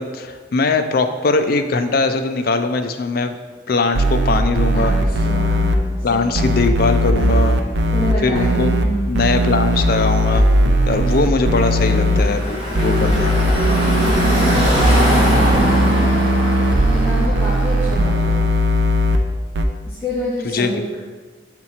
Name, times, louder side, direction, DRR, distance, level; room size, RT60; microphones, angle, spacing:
voice 1, 0.0-3.4 3.7-4.9 6.0-7.6 8.2-8.7 9.1-10.4 10.9-13.3 17.2-17.5 20.5-20.7, left 3 dB, 50° left, 8 dB, 0.4 m, -20 dB
sound 1, 3.9-5.8 6.3-8.8 9.1-12.2 12.7-19.2 19.5-19.6, equal, 65° right, 0.5 m, -18 dB
voice 2, 4.7-6.6 7.9-9.4 11.9-12.4 13.6-16.2 16.9-18.5 19.9-21.0, equal, 10° left, -9 dB, 1.0 m, -28 dB
Car passing by / Traffic noise roadway noise, 11.7-18.6, equal, 30° right, 1.7 m, -22 dB
6.5 x 4.4 x 4.2 m, 1.5 s
head